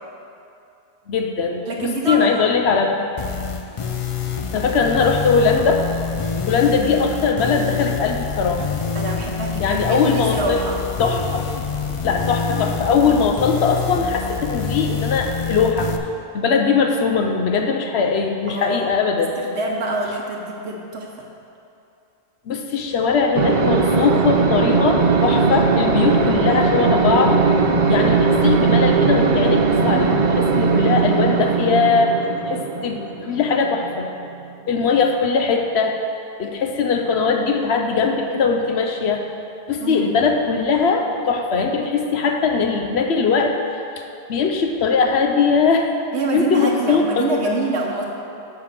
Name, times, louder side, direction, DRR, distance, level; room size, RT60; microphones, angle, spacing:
voice 1, 1.1-3.0 4.5-5.8 6.5-8.7 9.6-10.6 11.0-11.5 12.0-15.9 16.3-19.4 22.5-27.4 27.9-32.1 32.5-34.1 34.7-35.9 36.4-39.2 39.7-43.6 44.3-45.9 46.3-47.6, left 5 dB, 75° left, 3 dB, 0.9 m, -20 dB
voice 2, 1.7-2.3 8.9-10.7 18.5-18.8 19.4-21.3 39.8-40.1 46.1-48.0, right 2 dB, 75° right, -1 dB, 1.1 m, -26 dB
sound 1, 3.2-16.0, left 6 dB, 50° left, 0.4 m, -26 dB
sound 2, 23.3-34.4, right 5 dB, 50° right, 0.6 m, -19 dB
8.3 x 4.9 x 6.6 m, 2.6 s
omnidirectional pair, 1.1 m